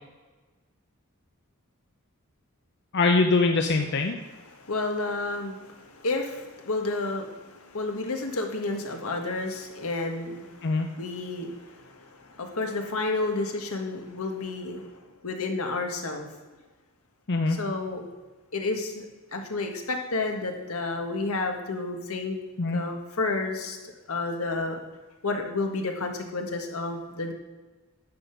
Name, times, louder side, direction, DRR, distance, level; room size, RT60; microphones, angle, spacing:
voice 1, 2.9-4.2 10.6-10.9 17.3-17.6 22.6-22.8, left 3 dB, 55° left, 4 dB, 0.6 m, -23 dB
voice 2, 4.4-16.3 17.5-18.0 18.5-19.1 19.3-22.4 22.7-23.8 24.1-24.8 25.2-27.3, left 3 dB, 80° left, 3 dB, 1.6 m, -31 dB
10.5 x 6.9 x 5.8 m, 1.2 s
head